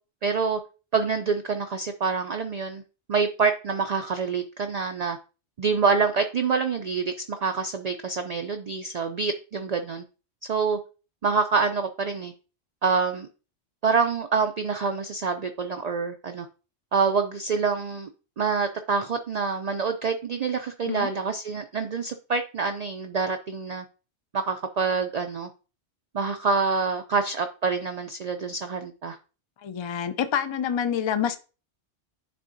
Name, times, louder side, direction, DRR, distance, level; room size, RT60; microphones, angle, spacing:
voice 1, 0.2-0.6 0.9-2.8 3.1-5.2 5.6-10.0 10.5-10.8 11.2-12.3 12.8-13.3 13.8-16.5 16.9-18.1 18.4-23.9 24.3-25.5 26.1-29.2, right 5 dB, 55° right, 6 dB, 0.4 m, -26 dB
voice 2, 29.6-31.4, left 8 dB, 45° left, 11 dB, 0.3 m, -27 dB
10.0 x 3.6 x 2.6 m, 0.33 s
omnidirectional pair, 1.2 m